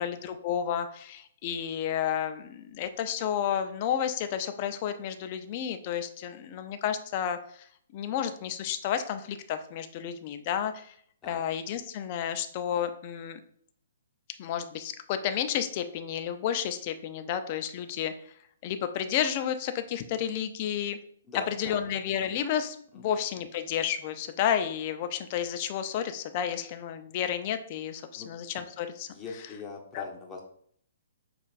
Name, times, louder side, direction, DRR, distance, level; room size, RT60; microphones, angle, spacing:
voice 1, 0.0-7.7 7.9-10.9 11.2-13.4 14.4-18.1 18.6-21.0 21.3-29.1 29.9-30.1, left 9 dB, 40° left, 8 dB, 0.4 m, -31 dB
voice 2, 21.3-21.9 22.9-23.1 28.2-28.3 29.1-30.4, left 4 dB, 15° left, -1 dB, 0.9 m, -41 dB
6.3 x 2.4 x 2.4 m, 0.62 s
hypercardioid pair, 145°, 0 cm